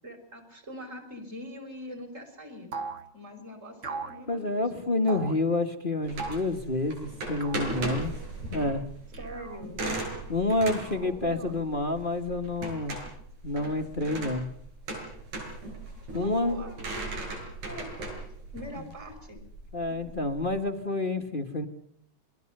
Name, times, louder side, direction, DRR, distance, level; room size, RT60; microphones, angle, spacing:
voice 1, 0.0-2.7 3.1-4.6 9.2-9.8 11.0-11.9 16.1-16.8 17.6-18.1 18.5-19.4, equal, 20° right, 4 dB, 5.8 m, -42 dB
sound 1, 2.7-3.0 3.8-4.2 5.1-5.4 6.2-6.5 7.4-7.7 9.1-9.6 10.5-11.2, right 4 dB, 35° right, 1.2 m, -38 dB
voice 2, 4.3-8.1 8.5-8.8 10.3-13.0 13.4-14.5 16.1-16.6 18.8-18.9 19.7-21.7, left 2 dB, 30° left, 6 dB, 1.0 m, -28 dB
sound 2, 6.0-20.5, right 2 dB, 85° right, 8.5 m, -38 dB
28.0 x 22.0 x 6.7 m, 0.63 s
omnidirectional pair, 3.4 m